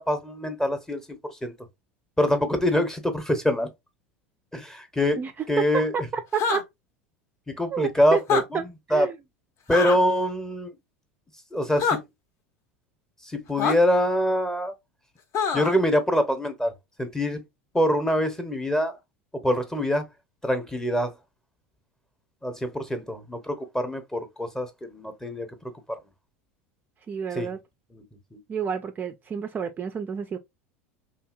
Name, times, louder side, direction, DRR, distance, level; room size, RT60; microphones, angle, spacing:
voice 1, 0.0-1.5 2.2-3.7 4.5-5.2 5.5-5.9 7.5-8.6 8.9-9.1 9.7-10.7 11.5-12.0 13.3-14.7 15.5-16.7 17.0-17.4 17.7-19.0 19.4-20.0 20.4-21.1 22.4-25.5 27.4-27.5 27.9-28.0 28.3-28.4, equal, 10° left, 0.7 m, -24 dB
voice 2, 5.2-6.7 7.7-8.2 8.5-9.2 27.1-27.6 28.5-30.4, right 7 dB, 25° right, 0.3 m, -29 dB
sound 1, 6.3-6.6 8.2-8.4 9.7-10.0 11.8-12.0 13.6-13.7 15.3-15.8, left 6 dB, 45° left, 0.7 m, -24 dB
2.9 x 2.7 x 2.4 m
hypercardioid pair, 90°, 7 cm